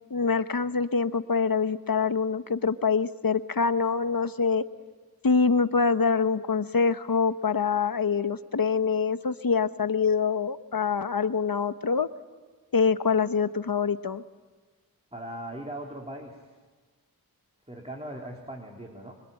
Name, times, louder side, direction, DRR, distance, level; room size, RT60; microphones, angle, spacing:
voice 1, 0.1-4.6 5.2-12.1 12.7-14.2, left 5 dB, 70° left, 11 dB, 1.1 m, -25 dB
voice 2, 15.1-16.4 17.7-19.1, right 1 dB, 15° right, 0 dB, 3.6 m, -39 dB
26.5 x 24.5 x 9.0 m, 1.4 s
wide cardioid pair, 65°, 36 cm